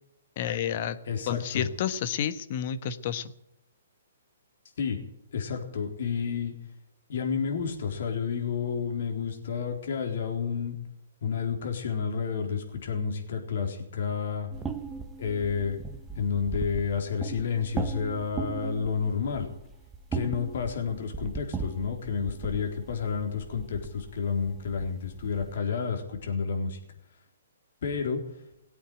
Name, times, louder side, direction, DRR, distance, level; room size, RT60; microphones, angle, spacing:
voice 1, 0.4-1.0 1.3-3.3, left 9 dB, 45° left, 12 dB, 1.3 m, -30 dB
voice 2, 1.1-1.7 4.8-5.0 5.3-6.5 7.1-10.8 11.2-14.5 15.2-15.8 16.2-19.5 20.1-26.8 27.8-28.2, left 6 dB, 65° left, 3 dB, 3.9 m, -30 dB
sound 1, 14.5-25.6, right 5 dB, 10° right, 1.1 m, -38 dB
18.5 x 8.6 x 9.2 m, 0.81 s
hypercardioid pair, 140°, 0 cm